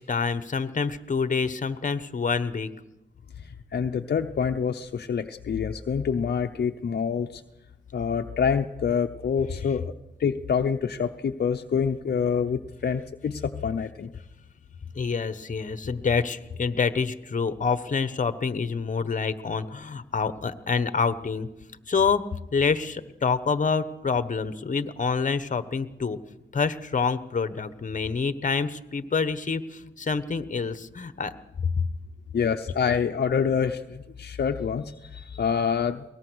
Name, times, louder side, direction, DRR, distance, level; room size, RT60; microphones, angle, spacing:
voice 1, 0.0-2.7 14.9-21.5 21.9-22.2 22.5-26.2 26.5-31.3 31.6-31.9, left 5 dB, 45° left, 13 dB, 1.2 m, -27 dB
voice 2, 3.4-7.4 7.9-9.8 10.2-14.1 32.3-36.0, left 6 dB, 60° left, 5 dB, 0.8 m, -26 dB
22.5 x 18.5 x 6.3 m, 0.96 s
cardioid pair, 75°, 18 cm